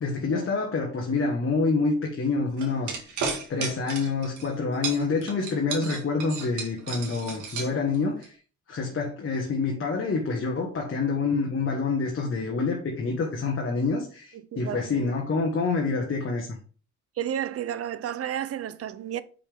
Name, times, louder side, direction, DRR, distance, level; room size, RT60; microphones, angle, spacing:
voice 1, 0.0-3.2 3.5-8.4 8.7-16.5, left 4 dB, 45° left, 1.4 m, -27 dB
sound 1, 2.6-4.5 4.8-8.3, right 5 dB, 85° right, 1.7 m, -33 dB
voice 2, 14.3-15.1 17.2-19.2, right 10 dB, 50° right, 0.6 m, -32 dB
5.6 x 5.2 x 3.6 m
cardioid pair, 90°, 30 cm